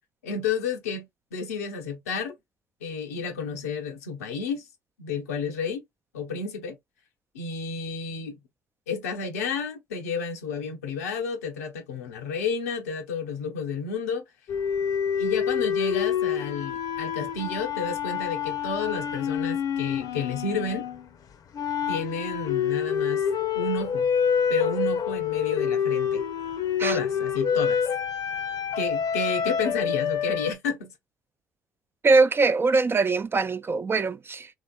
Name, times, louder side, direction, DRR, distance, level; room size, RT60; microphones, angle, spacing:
voice 1, 0.2-2.3 2.8-4.7 5.0-5.8 6.1-6.8 7.3-8.4 8.9-14.2 15.2-20.9 21.9-23.2 23.5-24.1 24.5-26.2 26.8-27.9 28.8-30.9, left 4 dB, 90° left, 0.7 m, -31 dB
sound 1, 14.5-21.1 21.5-30.5, left 7 dB, 50° left, 0.6 m, -27 dB
voice 2, 32.0-34.5, right 3 dB, 30° right, 0.4 m, -22 dB
3.2 x 2.9 x 2.4 m
hypercardioid pair, 55°, 8 cm